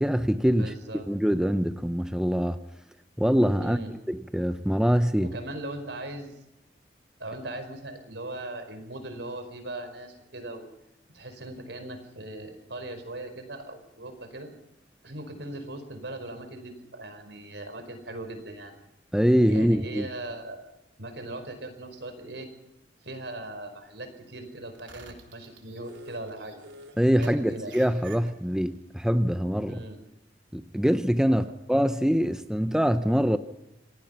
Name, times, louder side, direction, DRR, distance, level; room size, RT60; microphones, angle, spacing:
voice 1, 0.0-0.7 1.1-2.6 3.2-5.3 19.1-20.1 27.0-29.8 30.5-33.4, equal, 5° right, 0.7 m, -24 dB
voice 2, 0.5-1.1 3.6-3.9 5.2-6.4 7.2-10.7 11.1-14.5 15.0-18.8 19.4-20.7 21.0-22.5 23.0-26.6 27.2-27.7 29.7-30.0 31.3-31.5, right 1 dB, 70° right, 5.0 m, -39 dB
sound 1, 24.6-28.7, right 3 dB, 85° right, 3.7 m, -49 dB
27.0 x 18.5 x 5.7 m
head